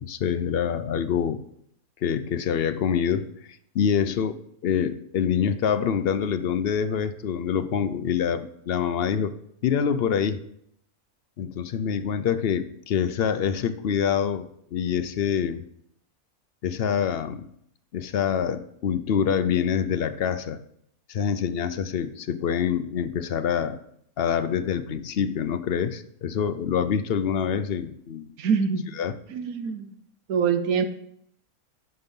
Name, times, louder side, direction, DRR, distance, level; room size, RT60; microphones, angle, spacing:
voice 1, 0.0-1.4 2.0-3.3 3.7-4.4 4.6-9.3 9.6-10.4 11.4-15.6 16.6-17.5 17.9-20.6 21.1-23.8 24.2-28.3 29.0-29.1, left 7 dB, 60° left, 11 dB, 0.6 m, -26 dB
voice 2, 28.4-28.9 29.3-29.9 30.3-30.9, right 6 dB, 75° right, 10 dB, 1.2 m, -24 dB
9.8 x 5.4 x 5.4 m, 0.72 s
omnidirectional pair, 1.6 m